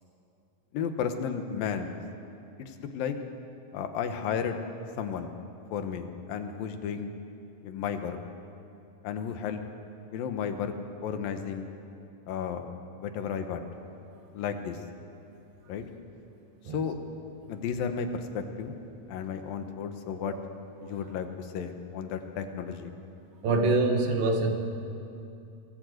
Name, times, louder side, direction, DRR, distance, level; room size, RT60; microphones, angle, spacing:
voice 1, 0.7-1.9 2.6-3.2 3.7-4.6 5.0-5.3 5.7-7.1 7.6-8.2 9.0-9.6 10.1-10.7 11.0-11.7 12.3-12.7 13.0-13.7 14.3-14.8 15.7-15.8 16.7-17.0 17.5-18.7 19.1-20.3 20.8-22.9, left 7 dB, 85° left, 7 dB, 3.0 m, -33 dB
voice 2, 23.4-24.5, right 3 dB, 85° right, 4 dB, 3.6 m, -26 dB
23.5 x 16.0 x 8.0 m, 2.8 s
omnidirectional pair, 4.0 m